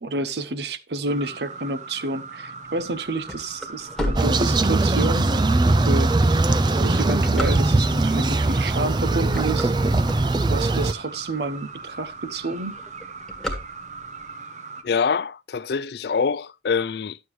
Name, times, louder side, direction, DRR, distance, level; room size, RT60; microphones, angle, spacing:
voice 1, 0.0-5.3 5.9-6.1 6.8-9.7 10.5-12.8, right 2 dB, 70° right, 0.8 m, -29 dB
sound 1, 1.1-14.8, right 4 dB, 40° right, 0.9 m, -39 dB
sound 2, 2.8-5.1 5.6-5.7 6.4-8.1 8.7-8.9 9.2-10.8 11.3-11.4 11.6-11.7 12.0-12.3 12.6-14.2, equal, ahead, 1.5 m, -32 dB
sound 3, 4.2-10.9, right 2 dB, 25° right, 0.4 m, -20 dB
voice 2, 14.8-17.2, left 5 dB, 65° left, 0.4 m, -25 dB
11.0 x 7.8 x 3.1 m
head